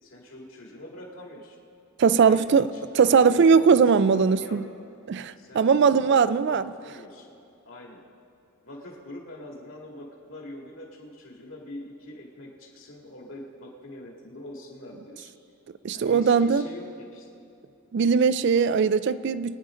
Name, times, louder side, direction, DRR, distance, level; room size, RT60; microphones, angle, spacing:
voice 1, 0.0-1.6 2.3-2.4 2.7-4.6 5.4-7.3 7.6-8.0 8.6-15.3 15.9-17.4, left 1 dB, 60° left, 2.2 m, -43 dB
voice 2, 2.0-2.7 2.9-4.6 5.1-6.7 15.8-16.6 17.9-19.6, right 6 dB, 50° right, 0.3 m, -20 dB
23.5 x 9.7 x 3.8 m
head